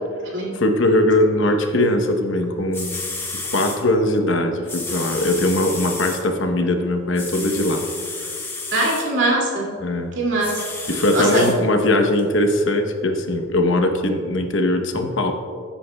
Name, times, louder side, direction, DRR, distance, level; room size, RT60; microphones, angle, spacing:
voice 1, 0.5-3.0 3.5-7.9 9.8-10.1 10.9-15.3, left 1 dB, 75° left, 5 dB, 1.0 m, -20 dB
sound 1, 2.4-2.5 2.7-3.8 4.7-6.2 7.1-9.0 10.4-11.5 12.2-12.3, left 3 dB, 10° left, 1.1 m, -31 dB
voice 2, 8.7-9.7 10.1-10.6 10.9-11.5, right 1 dB, 65° right, -3 dB, 2.5 m, -21 dB
15.5 x 8.4 x 2.3 m, 2.2 s
head